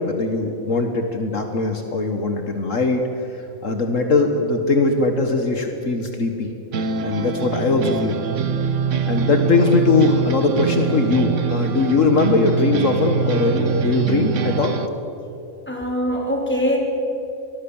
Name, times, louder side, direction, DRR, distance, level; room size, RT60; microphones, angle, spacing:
voice 1, 0.0-3.0 3.6-6.5 7.0-8.2 9.1-14.8, left 3 dB, 65° left, 5 dB, 1.8 m, -20 dB
sound 1, 6.7-14.9, right 6 dB, 60° right, 1.4 m, -23 dB
voice 2, 15.7-16.8, equal, 10° left, 0 dB, 4.1 m, -23 dB
25.5 x 20.5 x 7.3 m, 3.0 s
omnidirectional pair, 1.5 m